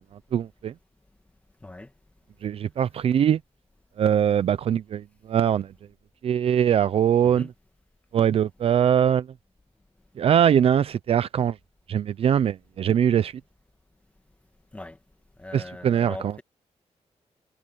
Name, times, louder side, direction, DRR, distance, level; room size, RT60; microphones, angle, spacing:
voice 1, 0.3-0.7 2.4-3.4 4.0-5.7 6.2-7.5 8.1-9.3 10.2-11.6 11.9-13.4 15.5-16.4, right 9 dB, 55° right, 0.5 m, -22 dB
voice 2, 15.4-16.4, left 2 dB, 10° left, 1.6 m, -40 dB
wide cardioid pair, 145°, 12 cm